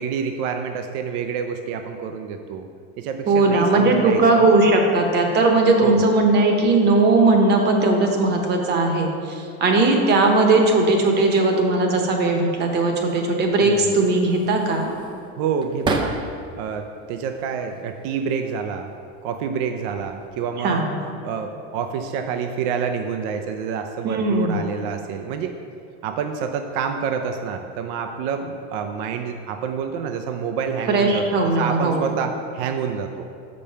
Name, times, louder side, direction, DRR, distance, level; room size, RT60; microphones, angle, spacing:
voice 1, 0.0-2.7 3.0-4.5 5.8-6.1 13.6-13.9 15.4-16.2 16.6-18.9 19.2-20.9 21.2-25.6 26.0-33.3, right 6 dB, 65° right, 6 dB, 0.6 m, -28 dB
voice 2, 3.3-14.9 20.6-20.9 24.0-24.6 30.9-32.1, right 2 dB, 35° right, 3 dB, 1.0 m, -18 dB
sound 1, 14.1-16.6 17.0-17.9 18.8-19.1 19.5-20.3, right 2 dB, 15° right, 0.4 m, -31 dB
6.6 x 5.3 x 5.6 m, 2.4 s
supercardioid pair, 150°, 31 cm